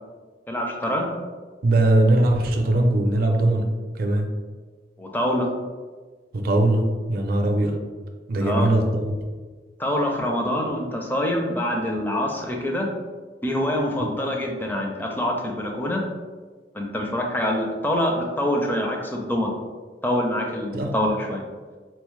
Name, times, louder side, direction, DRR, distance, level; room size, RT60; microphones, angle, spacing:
voice 1, 0.5-1.1 5.0-5.5 8.4-8.7 9.8-12.9 13.4-16.0 16.7-19.5 20.0-21.4, left 1 dB, 10° left, 0 dB, 0.4 m, -25 dB
voice 2, 1.6-4.3 6.3-7.8 8.3-9.2 14.0-14.2 20.7-21.0, right 1 dB, 55° right, 3 dB, 0.4 m, -21 dB
4.2 x 2.0 x 3.0 m, 1.4 s
head